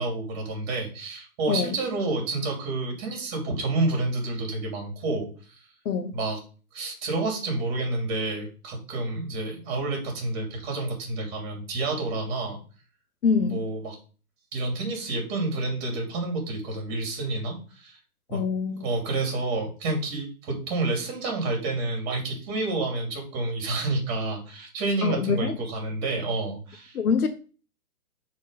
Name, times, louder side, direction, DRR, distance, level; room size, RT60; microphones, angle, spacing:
voice 1, 0.0-5.5 6.1-6.4 6.7-12.6 13.5-14.0 14.5-18.0 18.3-18.4 18.8-27.0, right 2 dB, 30° right, 3.0 m, -29 dB
voice 2, 5.8-6.2 13.2-13.6 18.3-18.8 25.0-25.6 26.9-27.3, left 6 dB, 70° left, 1.0 m, -25 dB
6.5 x 4.4 x 5.1 m
hypercardioid pair, 145°, 46 cm